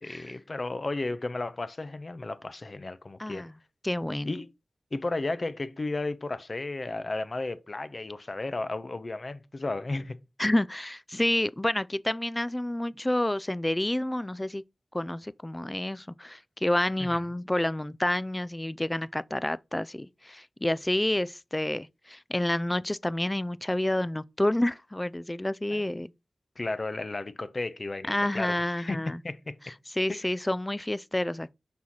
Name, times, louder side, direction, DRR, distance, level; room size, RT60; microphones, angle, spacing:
voice 1, 0.0-3.5 4.2-4.5 4.9-10.2 17.0-17.2 25.7-26.1 26.6-29.5 30.1-30.3, left 2 dB, 45° left, 0.8 m, -34 dB
voice 2, 3.2-3.5 3.8-4.4 10.4-14.6 14.9-26.1 28.1-29.2 30.0-31.5, left 1 dB, 15° left, 0.3 m, -29 dB
6.2 x 5.6 x 3.0 m
wide cardioid pair, 70°, 0 cm